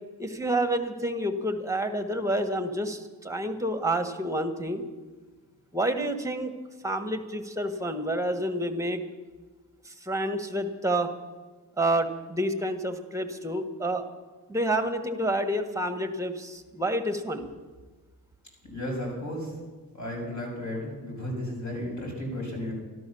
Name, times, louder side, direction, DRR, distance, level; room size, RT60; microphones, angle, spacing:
voice 1, 0.2-4.8 5.7-6.5 6.8-9.0 9.9-11.1 11.8-14.0 14.5-17.5, right 1 dB, 10° right, 7 dB, 1.5 m, -29 dB
voice 2, 18.6-19.5 19.9-22.7, left 1 dB, 45° left, -1 dB, 6.8 m, -34 dB
13.5 x 12.5 x 7.0 m, 1.3 s
wide cardioid pair, 100°, 41 cm